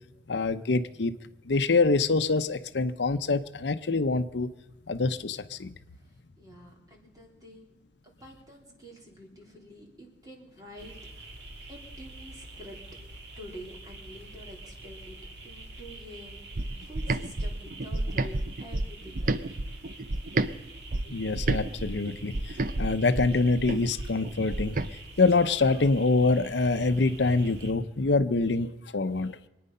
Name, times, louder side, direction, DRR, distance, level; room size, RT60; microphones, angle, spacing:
voice 1, 0.3-1.1 1.5-4.5 4.9-5.7 21.1-24.8 25.2-29.4, left 3 dB, 85° left, 11 dB, 0.7 m, -25 dB
voice 2, 6.4-7.7 8.0-11.3 11.7-12.8 13.4-15.2 15.4-19.4, equal, 20° right, 0 dB, 3.2 m, -48 dB
sound 1, 10.8-27.7, right 2 dB, 70° right, 2.2 m, -46 dB
sound 2, 16.6-20.5 20.9-24.9, right 2 dB, 50° right, 0.6 m, -30 dB
25.0 x 9.5 x 5.5 m, 0.98 s
head